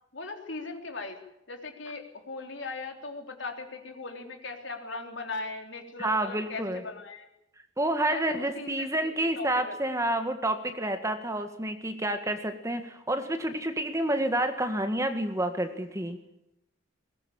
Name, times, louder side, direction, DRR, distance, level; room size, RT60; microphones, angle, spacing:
voice 1, 0.1-1.2 1.5-7.3 8.0-9.7, left 3 dB, 65° left, 4 dB, 3.6 m, -39 dB
voice 2, 6.0-6.8 7.8-16.2, right 1 dB, 15° right, 7 dB, 1.9 m, -29 dB
21.5 x 19.5 x 8.7 m, 0.80 s
head